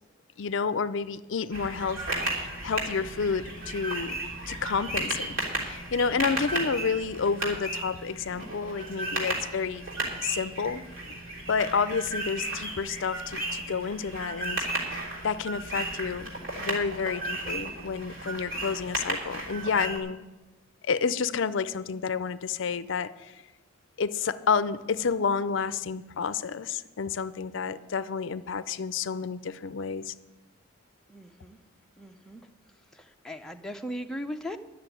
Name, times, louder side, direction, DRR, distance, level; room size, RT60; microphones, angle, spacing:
voice 1, 0.4-2.0 2.3-4.2 4.5-9.9 10.2-10.8 11.5-16.3 16.6-20.2 20.8-23.3 24.0-30.1, left 5 dB, 60° left, 15 dB, 0.5 m, -30 dB
sound 1, 1.5-20.0, right 2 dB, 60° right, 3.5 m, -34 dB
voice 2, 31.1-31.6 32.0-32.4 32.9-34.6, equal, 5° left, 3 dB, 0.5 m, -38 dB
11.5 x 6.9 x 9.1 m, 1.1 s
head